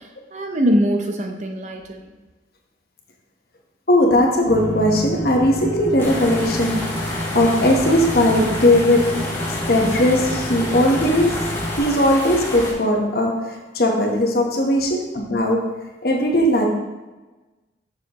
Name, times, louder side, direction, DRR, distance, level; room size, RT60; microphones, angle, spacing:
voice 1, 0.0-2.1, equal, 40° right, 4 dB, 0.6 m, -22 dB
voice 2, 3.9-6.9 7.3-9.2 9.7-11.5 11.8-15.7 16.0-16.7, left 1 dB, 60° left, 1 dB, 1.1 m, -18 dB
sound 1, 4.5-11.8, left 1 dB, 30° left, 1.6 m, -29 dB
sound 2, 6.0-12.7, left 1 dB, 15° left, 1.2 m, -29 dB
6.9 x 6.5 x 3.0 m, 1.1 s
head